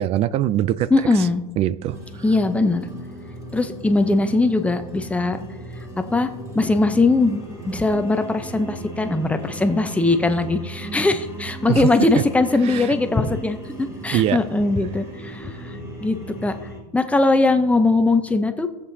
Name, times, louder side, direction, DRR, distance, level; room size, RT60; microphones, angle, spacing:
voice 1, 0.0-0.9 1.6-2.0 11.7-11.9 12.6-12.9 14.1-14.4, right 12 dB, 35° right, 0.3 m, -22 dB
voice 2, 0.9-1.4 2.2-2.9 3.5-5.4 6.1-6.3 6.5-16.2 16.4-16.5 16.9-18.7, left 3 dB, 5° left, 0.7 m, -20 dB
sound 1, 1.9-16.8, right 2 dB, 20° right, 2.5 m, -36 dB
17.5 x 7.7 x 2.8 m
supercardioid pair, 125°, 18 cm